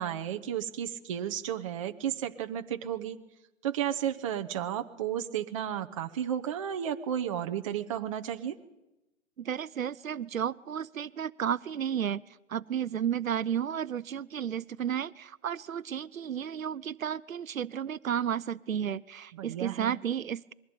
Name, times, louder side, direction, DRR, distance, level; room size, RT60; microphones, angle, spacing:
voice 1, 0.0-3.2 3.6-8.5 19.3-20.0, right 10 dB, 25° right, 5 dB, 0.8 m, -33 dB
voice 2, 9.4-12.2 12.5-20.5, right 9 dB, 90° right, 14 dB, 0.7 m, -32 dB
21.0 x 15.5 x 8.8 m, 0.98 s
hypercardioid pair, 150°, 39 cm